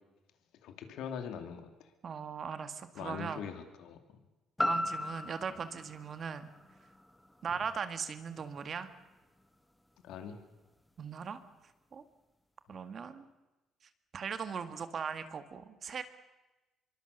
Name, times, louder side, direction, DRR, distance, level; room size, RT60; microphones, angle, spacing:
voice 1, 0.6-1.9 2.9-4.2 10.0-10.4, left 7 dB, 80° left, 6 dB, 2.7 m, -42 dB
voice 2, 2.0-3.4 4.6-6.5 7.4-8.9 11.0-11.4 11.9-12.0 12.7-13.3 14.1-16.0, right 6 dB, 45° right, 10 dB, 1.9 m, -39 dB
sound 1, 4.6-8.7 9.1-9.2, left 1 dB, 10° left, 1.8 m, -38 dB
24.5 x 22.5 x 6.7 m, 1.1 s
cardioid pair, 90°, 0 cm